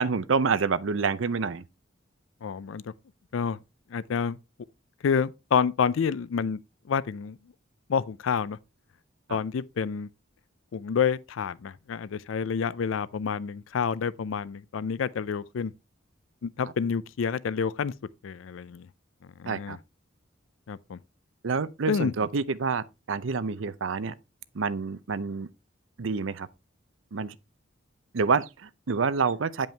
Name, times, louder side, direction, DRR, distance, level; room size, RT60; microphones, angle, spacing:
voice 1, 0.0-1.6 19.5-19.8 21.4-24.1 24.5-25.5 26.0-26.5 27.1-27.4 28.1-29.7, right 5 dB, 80° right, 0.6 m, -27 dB
voice 2, 2.4-2.9 3.3-3.6 3.9-4.4 5.0-6.6 6.9-7.4 7.9-8.6 9.3-10.1 10.7-15.7 16.4-17.9 18.2-18.9 19.4-19.8 20.7-21.0 21.9-22.1, left 6 dB, 85° left, 0.4 m, -28 dB
9.0 x 5.3 x 3.3 m
head